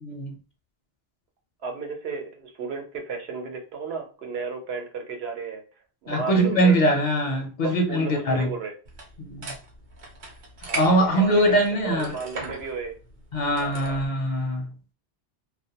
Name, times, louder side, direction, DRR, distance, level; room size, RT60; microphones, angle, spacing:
voice 1, 0.0-0.3 6.1-8.5 9.2-9.5 10.7-12.2 13.3-14.7, right 1 dB, 55° left, 0.5 m, -22 dB
voice 2, 1.6-5.6 6.0-7.2 7.6-8.7 10.6-13.0 13.6-13.8, right 5 dB, 80° right, 0.9 m, -33 dB
sound 1, 8.9-14.1, right 3 dB, 55° right, 0.7 m, -39 dB
2.3 x 2.1 x 2.7 m
omnidirectional pair, 1.0 m